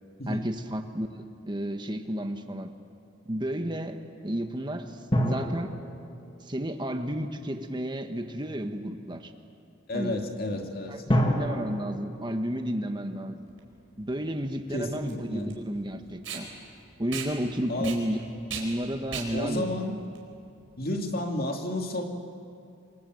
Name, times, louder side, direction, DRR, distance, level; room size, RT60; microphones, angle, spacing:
voice 1, 0.3-2.7 3.2-5.7 6.4-9.3 9.9-10.2 10.9-13.4 14.0-16.5 17.0-18.2 18.5-19.7, equal, 25° right, 6 dB, 1.4 m, -32 dB
sound 1, 5.1-7.7 11.1-13.7 14.0-14.1, equal, 25° left, 2.4 m, -30 dB
voice 2, 9.9-11.0 14.7-15.5 17.7-17.9 19.3-20.0 20.8-22.0, left 1 dB, 50° left, 2 dB, 2.6 m, -31 dB
Packing tape duct tape, 13.5-21.0, right 6 dB, 85° right, 4.7 m, -40 dB
27.5 x 23.0 x 7.9 m, 2.4 s
head